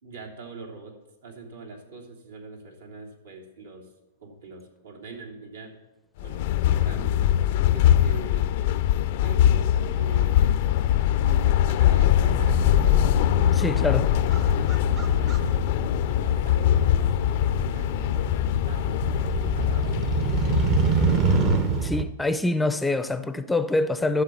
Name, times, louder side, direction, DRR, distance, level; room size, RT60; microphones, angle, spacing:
voice 1, 0.0-0.9 1.2-3.9 4.2-5.7 6.2-7.2 7.7-8.8 9.2-10.5 11.1-13.1 13.7-14.1 15.2-18.4 18.6-20.0 20.4-21.5, right 4 dB, 85° right, 3.3 m, -43 dB
sound 1, 6.2-21.9, left 11 dB, 55° left, 0.5 m, -22 dB
Motorcycle, 12.3-22.0, right 5 dB, 35° right, 0.8 m, -28 dB
voice 2, 13.5-14.1 21.8-24.2, left 2 dB, 5° left, 0.5 m, -25 dB
12.0 x 7.2 x 7.0 m
hypercardioid pair, 120°, 0 cm